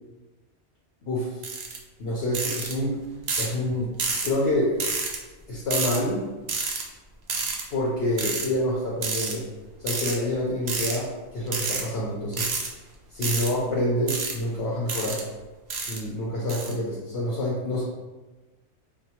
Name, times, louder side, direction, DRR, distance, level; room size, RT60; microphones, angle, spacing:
voice 1, 1.0-1.4 2.0-3.0 3.4-3.9 4.2-4.8 5.5-6.3 7.7-9.5 9.8-12.5 13.1-15.3 15.8-17.8, left 1 dB, 65° left, -6 dB, 0.9 m, -27 dB
sound 1, 1.4-1.8 2.3-2.7 3.3-3.5 4.0-4.3 4.8-5.2 5.7-6.0 6.5-6.8 7.3-7.6 8.2-8.5 9.0-9.3 9.9-10.2 10.7-11.0 11.5-11.8 12.3-12.7 13.2-13.5 14.1-14.3 14.9-15.2 15.7-16.0 16.5-16.7, right 4 dB, 55° right, 0.5 m, -28 dB
4.5 x 2.1 x 2.8 m, 1.2 s
omnidirectional pair, 1.2 m